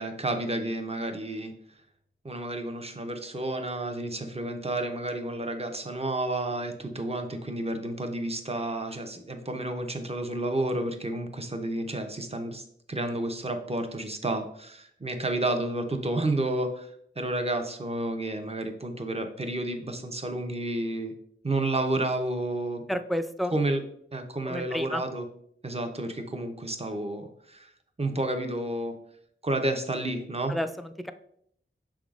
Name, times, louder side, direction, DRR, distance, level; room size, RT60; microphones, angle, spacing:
voice 1, 0.0-1.5 2.2-16.9 17.2-21.1 21.4-22.8 23.5-23.8 24.1-25.2 25.6-27.7 28.0-28.9 29.4-30.5, right 1 dB, 30° right, 6 dB, 0.6 m, -31 dB
voice 2, 22.9-23.5 24.5-25.0 30.5-31.1, equal, ahead, 9 dB, 0.3 m, -31 dB
6.0 x 3.6 x 2.4 m, 0.68 s
wide cardioid pair, 40°, 21 cm